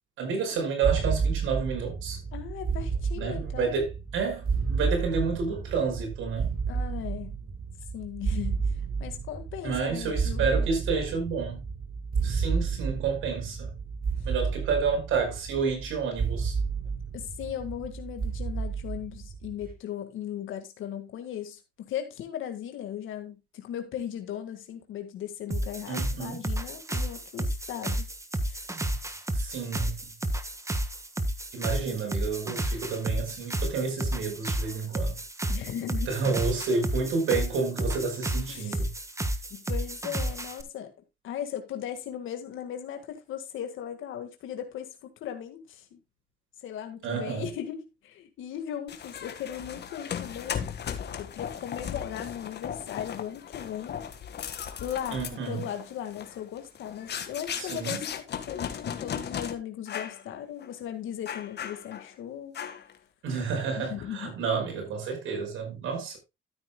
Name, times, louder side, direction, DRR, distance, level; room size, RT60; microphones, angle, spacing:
voice 1, 0.2-2.2 3.2-6.5 9.6-11.6 12.2-13.7 14.2-16.5 25.9-26.4 29.3-29.9 31.5-35.2 36.1-38.9 47.0-47.4 55.1-55.6 57.6-58.0 63.2-66.2, right 5 dB, 85° right, 5.5 m, -30 dB
sound 1, 0.8-19.7, right 5 dB, 50° right, 4.0 m, -31 dB
voice 2, 2.3-3.8 6.7-7.4 7.9-10.7 17.1-28.1 28.4-28.7 35.5-36.1 38.5-38.9 39.5-40.9 41.2-46.0 46.6-50.6 51.1-54.0 54.8-55.2 55.5-62.6 63.8-64.3, left 10 dB, 80° left, 1.8 m, -37 dB
sound 2, 25.5-40.6, right 1 dB, 15° right, 1.4 m, -31 dB
sound 3, 48.9-59.5 59.9-60.2 60.6-60.7 61.3-62.1 62.5-63.0, left 8 dB, 60° left, 1.7 m, -37 dB
13.5 x 9.1 x 2.3 m
cardioid pair, 90°, 20 cm